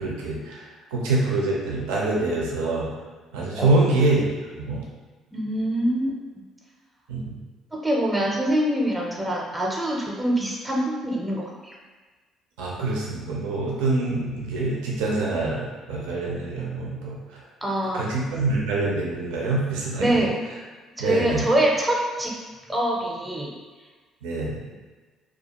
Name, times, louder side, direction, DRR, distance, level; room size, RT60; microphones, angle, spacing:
voice 1, 0.0-2.9 3.3-4.9 7.1-7.4 12.6-17.4 17.9-20.3 21.0-21.5 24.2-24.6, right 2 dB, 85° right, -3 dB, 0.5 m, -25 dB
voice 2, 5.3-6.2 7.7-11.7 17.6-18.0 20.0-20.4 21.0-22.3 22.7-23.5, right 1 dB, 10° right, -2 dB, 0.6 m, -24 dB
2.5 x 2.3 x 2.9 m, 1.3 s
supercardioid pair, 65°, 0 cm